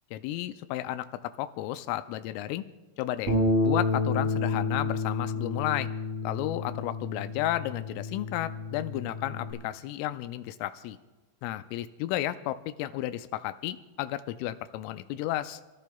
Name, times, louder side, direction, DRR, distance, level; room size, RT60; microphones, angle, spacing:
voice 1, 0.1-2.6 3.0-3.3 3.6-5.9 6.2-11.0 11.4-15.6, left 14 dB, 85° left, 10 dB, 3.1 m, -33 dB
Bass guitar, 3.3-9.5, left 2 dB, 35° right, 3.5 m, -30 dB
29.0 x 14.5 x 2.3 m, 1.2 s
omnidirectional pair, 5.7 m